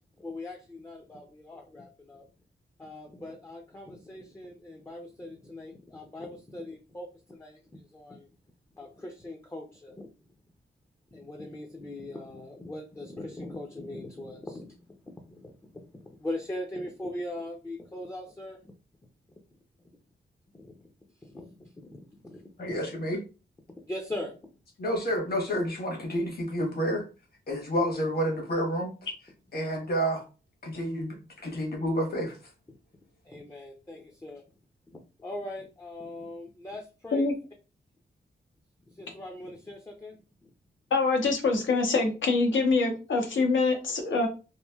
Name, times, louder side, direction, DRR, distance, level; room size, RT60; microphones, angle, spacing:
voice 1, 0.2-2.3 2.8-8.3 8.7-10.1 11.1-14.8 15.1-18.7 20.5-20.7 21.2-22.7 23.9-24.5 31.5-31.6 32.7-32.8 33.2-34.4 34.9-37.3 38.9-40.5, left 1 dB, 15° left, 2 dB, 0.4 m, -41 dB
voice 2, 22.6-23.2 24.8-27.1 27.5-28.9 29.5-30.2 30.6-31.1 31.4-32.4, equal, 55° left, 0 dB, 1.2 m, -29 dB
voice 3, 40.9-44.3, left 3 dB, 85° left, 2 dB, 0.9 m, -25 dB
3.0 x 2.5 x 2.3 m, 0.32 s
wide cardioid pair, 100°, 19 cm